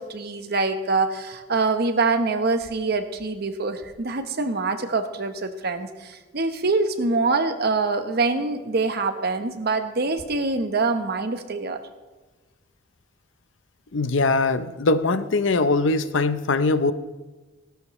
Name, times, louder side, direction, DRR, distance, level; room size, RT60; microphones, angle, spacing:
voice 1, 0.0-11.8, right 3 dB, 55° right, 8 dB, 1.0 m, -25 dB
voice 2, 13.9-16.9, left 3 dB, 80° left, 12 dB, 0.7 m, -21 dB
17.0 x 12.5 x 3.2 m, 1.2 s
head